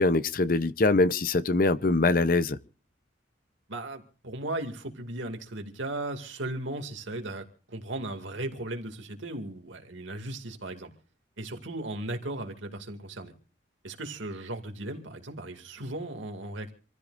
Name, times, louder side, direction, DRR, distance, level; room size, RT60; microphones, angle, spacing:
voice 1, 0.0-2.6, left 2 dB, 45° left, 0.7 m, -23 dB
voice 2, 3.7-10.9 11.4-13.3 13.8-16.7, right 2 dB, 80° right, 2.4 m, -36 dB
27.0 x 15.0 x 2.6 m
head